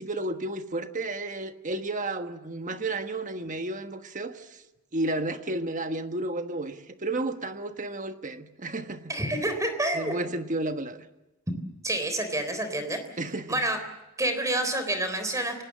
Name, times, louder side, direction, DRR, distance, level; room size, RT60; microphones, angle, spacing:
voice 1, 0.0-4.6 4.9-9.1 9.9-11.0 13.2-13.6, right 2 dB, 35° right, 8 dB, 1.3 m, -32 dB
voice 2, 9.1-10.1 11.5-11.6 11.8-13.0 13.5-13.8 14.2-15.6, right 1 dB, 15° right, 8 dB, 3.6 m, -28 dB
29.0 x 19.5 x 7.5 m, 1.0 s
head